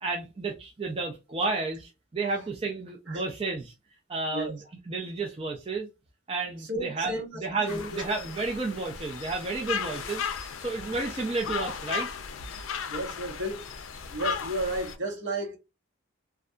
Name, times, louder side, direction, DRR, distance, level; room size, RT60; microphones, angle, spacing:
voice 1, 0.0-3.7 4.1-4.6 4.9-5.9 6.3-10.2 10.6-12.1, right 3 dB, 25° right, 0.4 m, -31 dB
voice 2, 6.6-8.0 12.9-13.6 14.1-15.6, right 1 dB, 65° right, 0.9 m, -33 dB
sound 1, 7.7-15.0, left 7 dB, 80° left, 0.4 m, -36 dB
2.6 x 2.3 x 2.2 m
head